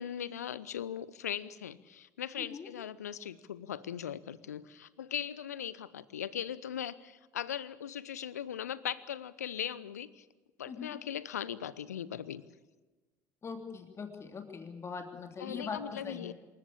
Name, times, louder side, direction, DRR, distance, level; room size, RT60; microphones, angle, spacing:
voice 1, 0.0-10.2 10.6-12.4 15.4-16.3, left 9 dB, 75° left, 19 dB, 0.8 m, -39 dB
voice 2, 2.4-2.7 10.7-10.9 13.4-16.3, left 5 dB, 30° left, 5 dB, 3.2 m, -41 dB
27.0 x 14.5 x 8.6 m, 1.2 s
figure-of-eight pair, 55°, 9 cm